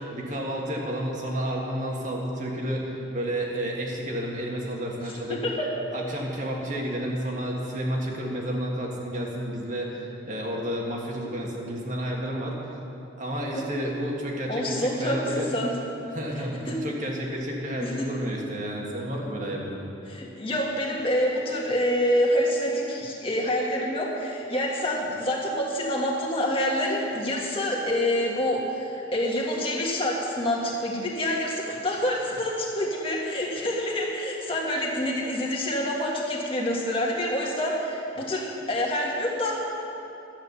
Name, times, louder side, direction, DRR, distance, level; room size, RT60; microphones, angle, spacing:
voice 1, 0.1-5.4 5.9-12.5 13.2-15.5 16.1-19.8, equal, 40° right, -2 dB, 1.7 m, -31 dB
voice 2, 5.3-5.7 13.5-13.6 14.5-15.7 16.7-16.8 17.8-18.1 20.1-39.6, left 1 dB, 30° left, -2 dB, 1.8 m, -27 dB
12.0 x 9.2 x 6.8 m, 2.8 s
head